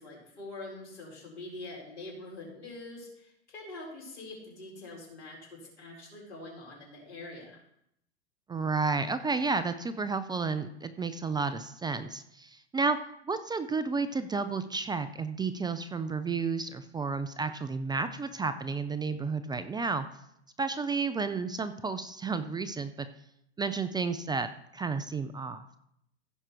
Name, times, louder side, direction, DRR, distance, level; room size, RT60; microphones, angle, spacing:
voice 1, 0.0-7.6, left 2 dB, 80° left, -1 dB, 4.8 m, -44 dB
voice 2, 8.5-13.0 13.2-20.1 20.6-23.1 23.6-25.6, right 4 dB, 15° right, 11 dB, 0.5 m, -31 dB
15.5 x 5.9 x 4.5 m, 0.76 s
hypercardioid pair, 95°, 33 cm